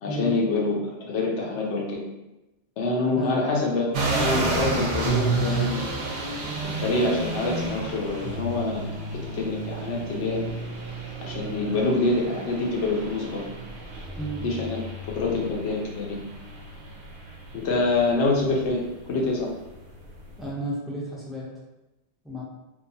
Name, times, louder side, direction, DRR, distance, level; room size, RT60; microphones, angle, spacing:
voice 1, 0.0-2.0 2.8-5.9 6.6-8.9 9.3-10.6 11.2-13.4 14.4-14.8 15.1-16.2 17.5-19.5, left 2 dB, 90° left, -1 dB, 1.0 m, -26 dB
sound 1, 3.9-20.5, right 3 dB, 60° right, 0.6 m, -32 dB
voice 2, 20.4-21.5 22.2-22.4, right 1 dB, ahead, -6 dB, 0.4 m, -32 dB
2.8 x 2.2 x 2.6 m, 0.98 s
omnidirectional pair, 1.1 m